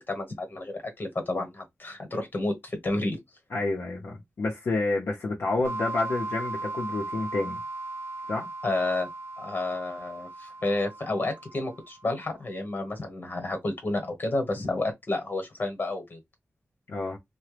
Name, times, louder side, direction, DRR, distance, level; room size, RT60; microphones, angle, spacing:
voice 1, 0.0-3.2 8.6-9.1 9.4-16.2, left 2 dB, 45° left, 1.2 m, -30 dB
voice 2, 3.5-7.6 8.3-8.5 16.9-17.2, left 2 dB, 70° left, 0.7 m, -29 dB
sound 1, 5.6-12.2, right 2 dB, 70° right, 0.6 m, -37 dB
2.8 x 2.2 x 3.3 m
wide cardioid pair, 125°, 4 cm